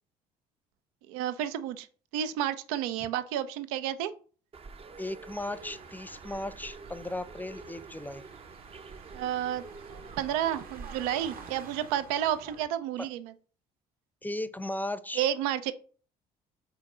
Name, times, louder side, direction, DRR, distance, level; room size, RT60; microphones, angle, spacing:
voice 1, 1.1-1.9 2.1-4.1 9.1-9.6 10.2-13.3 15.2-15.7, right 11 dB, 80° right, 13 dB, 0.5 m, -31 dB
Bird, 4.5-11.6, right 4 dB, 35° right, 0.6 m, -48 dB
voice 2, 5.0-8.2 13.0-13.1 14.2-15.3, left 1 dB, 10° left, 14 dB, 0.6 m, -36 dB
sound 1, 5.4-12.7, right 5 dB, 55° right, 1.2 m, -50 dB
5.0 x 3.9 x 4.9 m, 0.41 s
hypercardioid pair, 60°, 18 cm